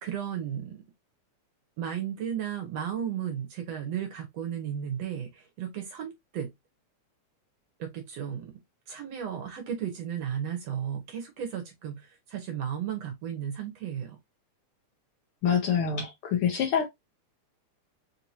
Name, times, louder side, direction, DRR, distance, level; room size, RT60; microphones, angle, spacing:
voice 1, 0.0-0.8 1.8-6.5 7.8-8.5 8.9-14.2, right 9 dB, 65° right, 1.8 m, -34 dB
voice 2, 15.4-16.9, left 7 dB, 85° left, 1.2 m, -26 dB
4.9 x 2.9 x 2.7 m
omnidirectional pair, 3.6 m